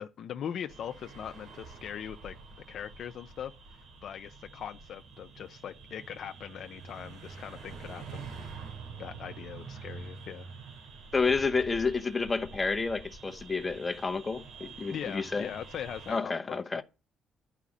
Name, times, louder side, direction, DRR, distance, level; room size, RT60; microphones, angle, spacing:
voice 1, 0.0-2.4 2.7-3.5 4.0-8.5 9.0-10.5 14.9-16.8, left 9 dB, 65° left, 0.7 m, -40 dB
sound 1, 0.7-16.2, right 4 dB, 85° right, 3.3 m, -47 dB
voice 2, 11.1-15.5 16.1-16.8, left 4 dB, 25° left, 0.9 m, -30 dB
11.5 x 5.0 x 8.4 m
cardioid pair, 90°, 0 cm